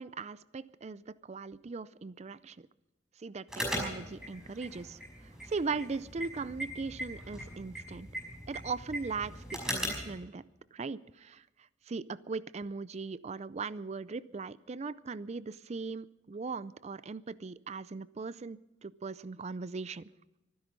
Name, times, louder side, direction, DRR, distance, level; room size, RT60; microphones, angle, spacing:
voice 1, 0.0-2.7 3.2-8.1 8.5-10.4 10.7-11.4 11.9-20.1, right 4 dB, 35° right, 17 dB, 0.4 m, -39 dB
sound 1, 3.5-10.1, equal, 5° right, 5.6 m, -39 dB
24.0 x 10.5 x 5.4 m, 0.98 s
head